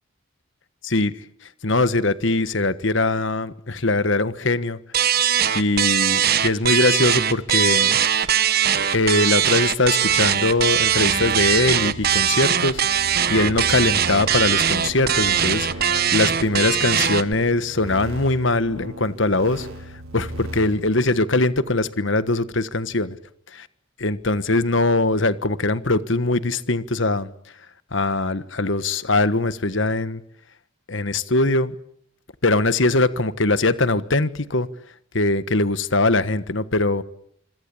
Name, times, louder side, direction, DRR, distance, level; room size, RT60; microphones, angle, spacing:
voice 1, 0.8-1.2 1.6-4.8 5.1-5.2 5.5-8.3 8.7-12.8 13.3-19.7 20.1-23.2 23.5-23.7 24.0-27.3 27.9-30.2 30.9-31.7 32.4-34.7 35.1-37.0, left 2 dB, 60° left, 14 dB, 1.4 m, -21 dB
sound 1, 4.9-17.3, right 9 dB, 45° right, 1.2 m, -20 dB
sound 2, 10.1-21.2, right 1 dB, 90° right, 6.4 m, -37 dB
26.5 x 26.0 x 8.5 m, 0.68 s
head